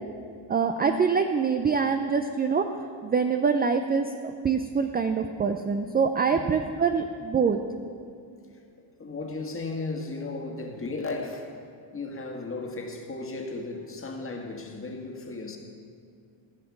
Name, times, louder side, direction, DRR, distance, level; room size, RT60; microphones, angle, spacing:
voice 1, 0.5-2.6 3.0-4.1 4.4-7.6, right 5 dB, 20° right, 7 dB, 0.4 m, -24 dB
voice 2, 9.0-11.5 11.9-15.6, left 3 dB, 25° left, 1 dB, 1.7 m, -35 dB
15.0 x 5.0 x 7.2 m, 2.3 s
cardioid pair, 105°, 48 cm